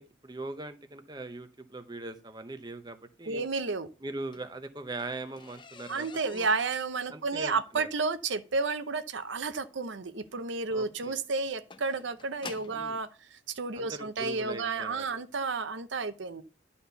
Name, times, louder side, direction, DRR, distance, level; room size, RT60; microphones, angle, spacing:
voice 1, 0.0-3.4 4.0-6.1 6.3-6.5 7.1-7.9 10.7-11.2 12.7-13.0 13.8-15.2, right 2 dB, 20° right, 0.7 m, -41 dB
voice 2, 3.3-3.9 5.9-16.4, right 4 dB, 80° right, 0.7 m, -32 dB
sound 1, 4.0-12.9 13.8-13.9 14.5-14.7 15.0-15.1 15.4-15.5, left 5 dB, 25° left, 0.5 m, -50 dB
11.0 x 4.3 x 6.8 m
head